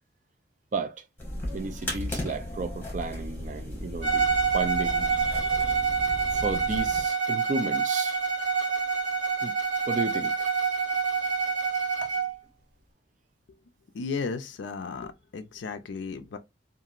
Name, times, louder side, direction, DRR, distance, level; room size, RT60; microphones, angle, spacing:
voice 1, 0.7-1.0 1.5-5.8 6.3-8.2 9.4-9.5 9.9-10.5 12.0-12.1, right 3 dB, 45° right, 0.5 m, -33 dB
sound 1, 1.2-7.1, left 1 dB, 10° left, 1.0 m, -35 dB
Bowed string instrument, 4.0-12.3, right 5 dB, 70° right, 1.3 m, -27 dB
voice 2, 13.9-16.4, left 4 dB, 85° left, 0.4 m, -34 dB
2.8 x 2.5 x 2.4 m
head